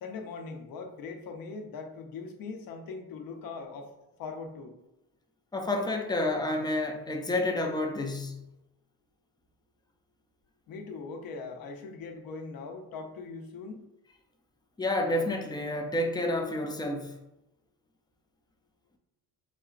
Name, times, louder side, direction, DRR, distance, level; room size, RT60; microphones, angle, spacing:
voice 1, 0.0-3.9 4.2-4.7 10.7-13.8, left 4 dB, 70° left, 0.8 m, -40 dB
voice 2, 5.5-8.4 14.8-17.1, left 1 dB, 10° left, 0.3 m, -29 dB
4.7 x 4.1 x 2.4 m
cardioid pair, 150°, 36 cm